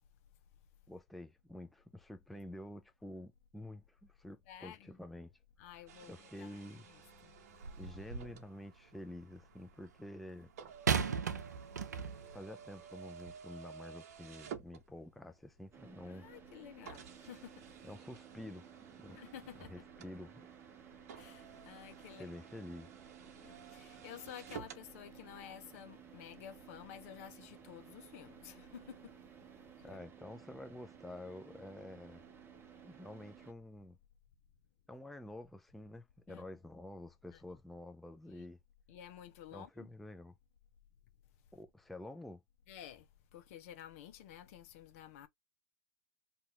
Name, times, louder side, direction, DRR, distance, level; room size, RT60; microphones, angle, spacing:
voice 1, 0.9-5.3 5.6-5.8 6.1-6.9 7.8-10.5 12.3-16.3 17.8-19.2 19.6-20.5 22.2-22.9 29.8-32.2 32.8-34.0 34.9-38.6 39.5-40.3 41.5-42.4, left 1 dB, ahead, 0.4 m, -49 dB
voice 2, 4.5-5.0 5.6-7.3 16.0-17.6 19.1-19.8 21.1-22.3 23.4-29.1 29.9-30.0 36.3-36.6 37.3-37.4 38.3-38.5 38.9-39.9 42.7-43.1 43.3-45.3, left 10 dB, 55° left, 0.7 m, -52 dB
sound 1, 5.9-15.4 16.1-16.2 16.9-24.9, right 7 dB, 55° right, 0.9 m, -54 dB
sound 2, 7.6-8.4 10.9-12.4 13.2-13.3, right 6 dB, 80° right, 0.5 m, -36 dB
Car / Idling, 15.7-33.5, right 8 dB, 25° right, 0.8 m, -56 dB
2.7 x 2.5 x 3.3 m
figure-of-eight pair, 95°, 9 cm